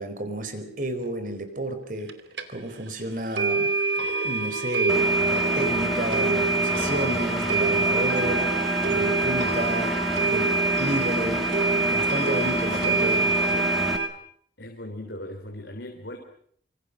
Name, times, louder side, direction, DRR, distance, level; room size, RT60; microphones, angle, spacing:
voice 1, 0.0-2.1 2.5-3.7 4.0-8.5 8.8-9.9 10.2-11.4 11.9-13.2 13.5-13.6, right 1 dB, 50° right, 8 dB, 4.4 m, -31 dB
sound 1, 2.1-2.2 2.4-2.5 2.9-3.0 3.4-14.1, right 3 dB, 80° right, 2.7 m, -25 dB
Engine, 4.9-14.0, equal, ahead, 2.1 m, -29 dB
voice 2, 12.7-13.4 14.6-16.2, left 1 dB, 90° left, 3 dB, 3.5 m, -38 dB
25.5 x 25.5 x 6.4 m, 0.62 s
head